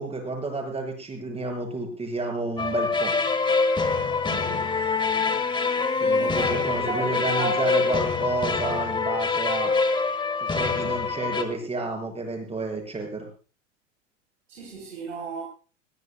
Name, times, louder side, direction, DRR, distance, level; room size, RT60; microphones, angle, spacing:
voice 1, 0.0-3.1 6.0-9.7 10.4-13.3, right 3 dB, 15° right, 7.4 m, -30 dB
sound 1, 2.6-11.4, left 4 dB, 15° left, 2.0 m, -25 dB
voice 2, 4.3-4.7 6.2-7.9 10.8-11.0 14.5-15.4, right 3 dB, 75° right, 4.5 m, -34 dB
22.0 x 17.5 x 2.3 m
figure-of-eight pair, 85°, 37 cm